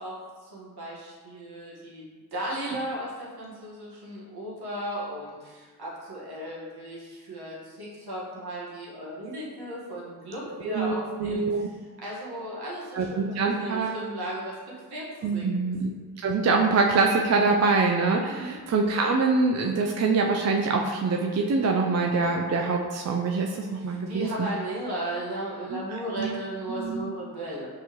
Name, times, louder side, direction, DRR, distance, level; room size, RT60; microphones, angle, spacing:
voice 1, 0.0-11.7 12.0-14.6 14.9-15.7 18.3-18.5 23.7-27.7, right 1 dB, 70° right, -5 dB, 1.4 m, -36 dB
voice 2, 10.6-11.6 12.9-13.9 15.2-15.9 16.2-24.5 26.2-26.3 26.7-27.1, right 4 dB, 40° right, 1 dB, 0.4 m, -24 dB
5.4 x 3.0 x 3.0 m, 1.5 s
cardioid pair, 45°, 40 cm